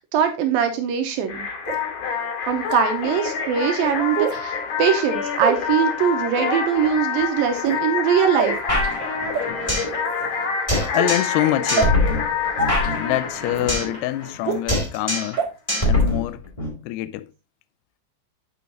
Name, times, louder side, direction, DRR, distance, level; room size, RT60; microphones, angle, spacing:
voice 1, 0.0-1.5 2.5-8.6, right 8 dB, 75° right, 2.2 m, -22 dB
sound 1, 1.3-14.7, left 6 dB, 60° left, 2.7 m, -27 dB
sound 2, 1.6-1.8 2.6-2.7 4.1-4.4 5.4-5.6 6.3-6.6 7.5-7.8 8.4-8.6 9.3-9.4 10.0-10.3 11.0-11.1 11.7-11.9 12.6-12.7 13.5-13.6 14.4-14.6 15.4-15.5 16.0-16.1, right 5 dB, 60° right, 1.6 m, -24 dB
sound 3, 8.7-10.0 10.2-10.3 10.7-11.4 11.7-14.0 14.2-14.4 14.7-15.4 15.7-16.7, left 1 dB, 15° left, 1.3 m, -23 dB
voice 2, 10.9-12.0 13.0-15.4 15.8-16.4 16.9-17.3, left 14 dB, 85° left, 2.5 m, -25 dB
6.9 x 6.3 x 3.8 m
omnidirectional pair, 4.7 m